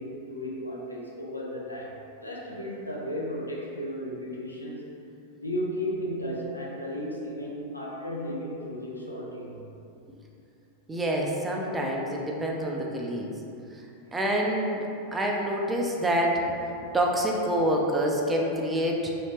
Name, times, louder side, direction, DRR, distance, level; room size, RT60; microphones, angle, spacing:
voice 1, 0.0-2.0 2.2-4.9 5.4-9.7, equal, 85° left, -4 dB, 0.5 m, -34 dB
voice 2, 10.9-13.4 13.7-13.9 14.1-16.6 16.9-19.1, equal, 10° right, -1 dB, 0.4 m, -27 dB
2.9 x 2.7 x 3.2 m, 2.7 s
figure-of-eight pair, 90°, 0 cm